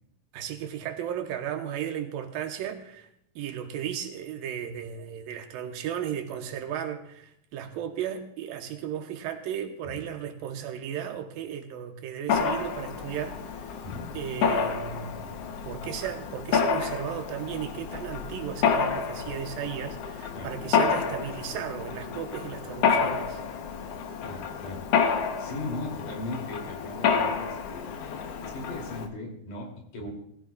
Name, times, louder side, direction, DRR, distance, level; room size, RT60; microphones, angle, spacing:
voice 1, 0.3-3.1 3.4-13.7 14.1-15.2 15.7-23.4, right 9 dB, 80° right, 6 dB, 2.6 m, -35 dB
Mechanisms, 12.3-29.1, left 6 dB, 85° left, 1.3 m, -29 dB
voice 2, 24.2-24.8 25.4-28.0 28.4-30.1, left 2 dB, 65° left, 0 dB, 4.3 m, -38 dB
19.0 x 15.5 x 2.3 m, 0.73 s
omnidirectional pair, 4.1 m